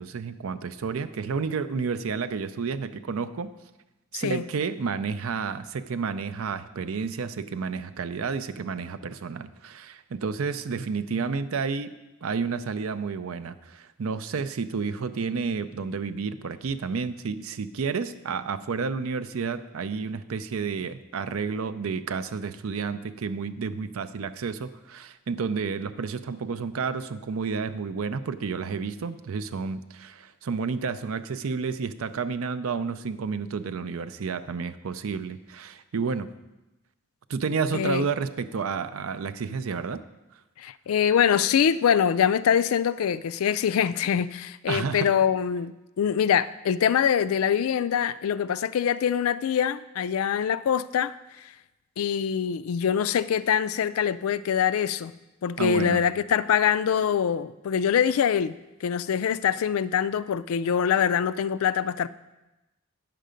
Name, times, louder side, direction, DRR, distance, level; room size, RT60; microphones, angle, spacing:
voice 1, 0.0-3.5 4.1-11.9 12.2-36.3 37.3-40.0 44.7-45.1 55.6-56.0, right 5 dB, 80° right, 12 dB, 0.5 m, -30 dB
voice 2, 37.7-38.1 40.6-51.1 52.0-55.1 55.4-58.6 58.8-62.1, left 8 dB, 85° left, 14 dB, 0.4 m, -24 dB
9.1 x 6.7 x 5.1 m, 1.0 s
head